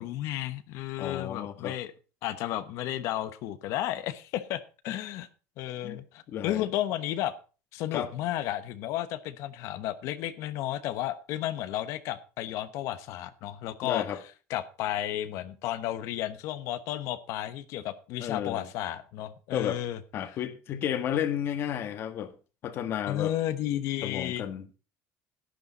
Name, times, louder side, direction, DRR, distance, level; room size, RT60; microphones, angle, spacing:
voice 1, 0.0-1.9 2.2-5.3 5.6-7.3 7.7-14.0 14.5-20.0 23.1-24.4, left 13 dB, 60° left, 1.1 m, -33 dB
voice 2, 1.0-1.8 5.8-6.0 6.3-6.6 7.9-8.1 13.8-14.2 18.2-18.7 19.5-19.8 20.1-22.3 22.6-23.3 24.0-24.8, left 10 dB, 45° left, 1.6 m, -32 dB
11.5 x 11.0 x 4.1 m
cardioid pair, 155°, 6 cm